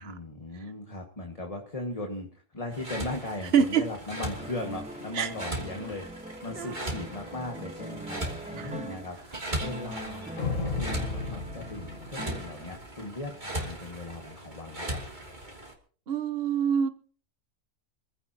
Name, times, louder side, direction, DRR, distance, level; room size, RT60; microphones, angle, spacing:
voice 1, 0.0-8.2 8.5-15.0, left 2 dB, 25° left, 1 dB, 2.0 m, -38 dB
sound 1, 2.7-15.7, right 1 dB, 35° right, 3.0 m, -39 dB
voice 2, 3.5-3.8 5.1-5.3 6.5-6.8 8.6-9.0 16.1-16.9, right 7 dB, 50° right, 11 dB, 1.3 m, -26 dB
sound 2, 4.4-9.2 9.6-12.9, right 1 dB, 5° right, 0.7 m, -43 dB
sound 3, 10.4-12.9, left 4 dB, 70° left, 1.7 m, -33 dB
26.0 x 15.5 x 3.0 m, 0.42 s
omnidirectional pair, 1.4 m